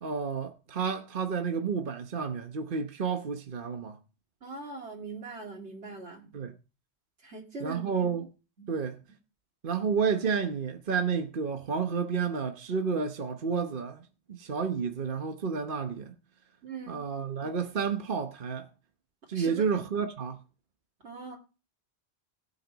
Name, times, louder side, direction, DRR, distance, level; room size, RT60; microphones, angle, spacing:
voice 1, 0.0-4.0 6.3-6.5 7.6-8.3 8.7-9.0 9.6-14.0 14.3-16.1 16.9-18.7 19.3-20.4, right 6 dB, 50° right, 1.2 m, -30 dB
voice 2, 4.4-6.3 7.2-8.1 8.6-8.7 16.6-17.0 19.3-19.8 21.0-21.4, right 3 dB, 80° right, 2.9 m, -41 dB
20.0 x 8.4 x 4.0 m
omnidirectional pair, 1.1 m